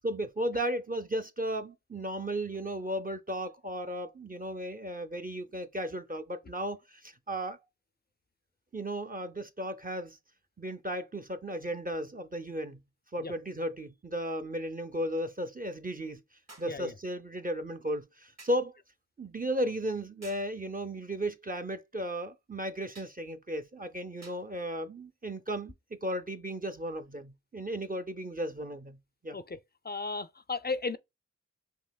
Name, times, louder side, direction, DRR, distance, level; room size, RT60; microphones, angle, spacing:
voice 1, 0.0-7.6 8.7-10.2 10.6-12.8 13.1-16.2 16.6-18.7 19.2-25.7 26.0-29.0 29.2-29.4, right 1 dB, 30° right, 0.5 m, -35 dB
sound 1, 12.7-12.8 16.5-16.8 18.4-18.7 20.2-20.6 22.9-23.2 24.2-24.5 25.6-25.7, right 2 dB, 60° right, 1.4 m, -53 dB
voice 2, 29.8-31.0, left 4 dB, 35° left, 0.4 m, -35 dB
5.4 x 2.9 x 2.2 m
wide cardioid pair, 40°, 31 cm